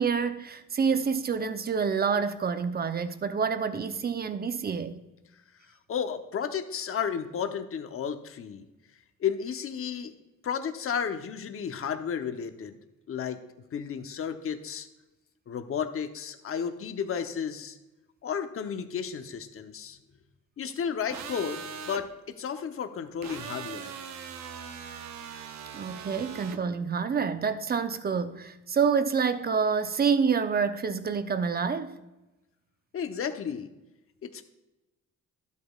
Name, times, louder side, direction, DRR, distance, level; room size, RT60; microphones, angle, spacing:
voice 1, 0.0-5.0 25.7-32.0, right 6 dB, 30° right, 0.7 m, -27 dB
voice 2, 5.6-8.6 9.2-10.1 10.4-12.7 13.1-13.4 13.7-14.9 15.5-17.8 18.2-20.0 20.6-24.0 32.9-33.7 34.2-34.4, left 7 dB, 45° left, 0.9 m, -33 dB
sound 1, 21.1-22.0 23.2-26.6, right 7 dB, 65° right, 0.8 m, -40 dB
12.0 x 8.3 x 2.4 m
cardioid pair, 90°, 30 cm